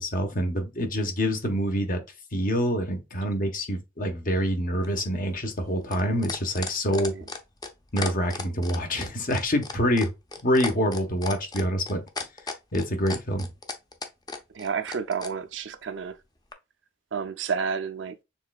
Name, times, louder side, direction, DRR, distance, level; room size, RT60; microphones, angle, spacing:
voice 1, 0.0-2.0 2.3-7.1 7.9-10.1 10.4-12.0 12.7-13.5, equal, 45° left, 1.2 m, -26 dB
sound 1, 4.8-15.3 16.5-16.6, left 4 dB, 20° left, 0.6 m, -35 dB
voice 2, 14.5-16.2 17.1-18.2, right 6 dB, 60° right, 0.5 m, -31 dB
6.8 x 3.2 x 2.4 m
head